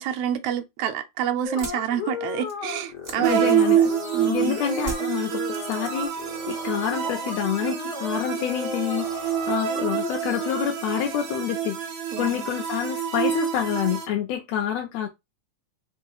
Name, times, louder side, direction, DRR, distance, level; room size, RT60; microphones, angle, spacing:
voice 1, 0.0-4.6 12.1-12.5, right 10 dB, 75° right, 1.4 m, -28 dB
sound 1, 1.4-10.6, left 4 dB, 60° left, 1.4 m, -36 dB
sound 2, 1.4-4.2 4.8-6.3 6.6-7.2, right 1 dB, 35° right, 1.2 m, -39 dB
voice 2, 3.2-3.8 4.3-11.8 12.2-15.1, left 10 dB, 80° left, 1.6 m, -28 dB
sound 3, 3.2-14.1, right 9 dB, 60° right, 1.8 m, -27 dB
5.2 x 2.0 x 4.6 m
omnidirectional pair, 3.4 m